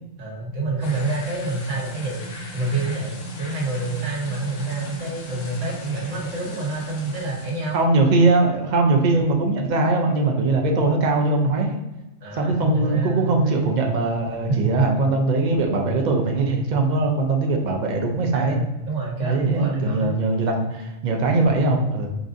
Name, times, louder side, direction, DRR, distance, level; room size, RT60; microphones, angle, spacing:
voice 1, 0.2-2.3 2.5-7.8 12.2-13.7 14.5-14.7 18.3-20.1 21.4-21.6, right 3 dB, 80° right, -2 dB, 1.3 m, -27 dB
sound 1, 0.8-7.8, left 2 dB, 75° left, 1.0 m, -37 dB
voice 2, 7.7-11.8 12.3-18.6 19.2-22.1, right 2 dB, 60° right, 2 dB, 0.5 m, -21 dB
4.1 x 2.5 x 2.5 m, 1.0 s
omnidirectional pair, 1.3 m